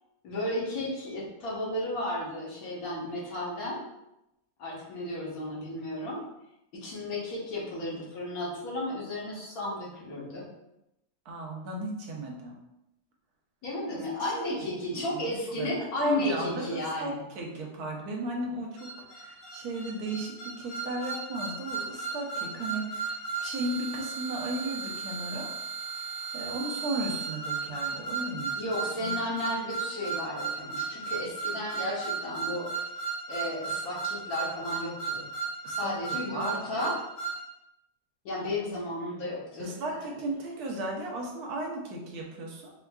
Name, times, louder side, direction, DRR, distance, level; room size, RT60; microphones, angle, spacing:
voice 1, 0.2-3.8 4.6-6.2 6.7-10.4 13.6-17.2 28.6-32.9 33.3-35.2 35.8-37.0 38.2-39.7, left 1 dB, 65° left, -5 dB, 1.4 m, -34 dB
voice 2, 11.3-12.6 13.9-14.4 14.9-15.0 15.6-23.1 23.4-25.5 26.3-28.5 29.0-29.1 35.6-35.9 36.3-36.9 39.6-42.7, right 1 dB, 75° right, 0 dB, 1.2 m, -35 dB
sound 1, 18.8-37.4, right 5 dB, 90° left, 1.4 m, -35 dB
4.4 x 2.4 x 2.2 m, 0.88 s
omnidirectional pair, 1.7 m